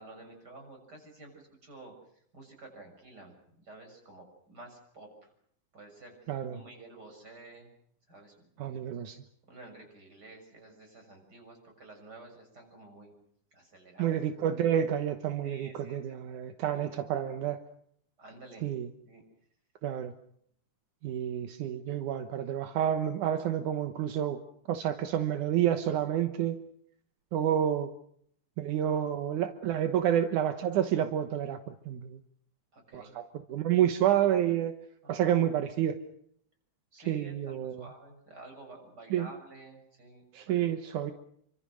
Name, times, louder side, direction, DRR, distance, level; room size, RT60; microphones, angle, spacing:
voice 1, 0.0-5.3 5.7-7.7 8.1-9.1 9.5-13.1 13.5-14.2 15.4-16.2 16.7-16.9 18.2-18.7 19.1-19.2 21.9-22.0 32.7-33.1 35.0-35.5 36.9-40.7, right 2 dB, 30° right, 4 dB, 7.3 m, -51 dB
voice 2, 6.3-6.6 8.6-9.2 14.0-17.6 18.6-18.9 19.8-20.1 21.0-24.4 24.7-26.6 27.3-27.9 28.6-31.6 31.9-32.2 32.9-33.2 33.5-34.7 35.1-36.0 37.1-37.8 39.1-39.3 40.3-41.1, right 10 dB, 80° right, 8 dB, 2.6 m, -29 dB
28.5 x 25.0 x 6.3 m, 0.67 s
omnidirectional pair, 3.5 m